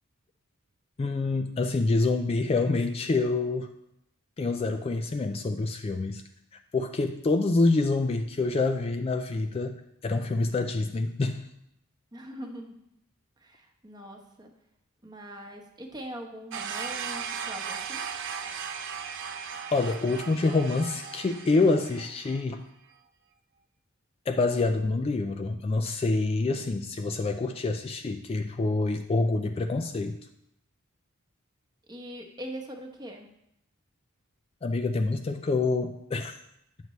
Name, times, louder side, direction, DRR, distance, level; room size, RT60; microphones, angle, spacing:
voice 1, 1.0-3.7 4.4-6.2 6.7-11.5 19.7-22.6 24.3-30.2 34.6-36.4, left 3 dB, 25° left, 6 dB, 0.3 m, -26 dB
voice 2, 12.1-12.8 13.4-14.5 15.0-18.1 31.9-33.3, equal, 20° right, 2 dB, 0.9 m, -42 dB
sound 1, 16.5-22.4, right 6 dB, 60° right, 0.6 m, -37 dB
9.3 x 6.6 x 3.1 m, 0.80 s
head